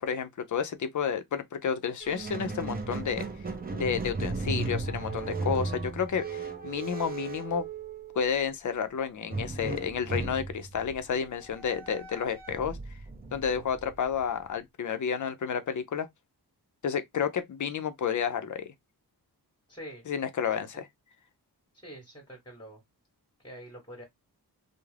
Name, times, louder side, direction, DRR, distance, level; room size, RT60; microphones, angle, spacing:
voice 1, 0.0-3.3 3.7-7.7 8.2-12.8 13.3-16.1 16.8-18.7 20.1-20.9, left 7 dB, 50° left, 0.5 m, -31 dB
Squeak, 2.0-8.4 9.3-14.5, right 3 dB, 25° right, 0.4 m, -36 dB
voice 2, 19.7-20.0 21.8-22.8 23.4-24.0, equal, 10° left, 0.9 m, -45 dB
2.4 x 2.0 x 3.1 m
wide cardioid pair, 135°, 40 cm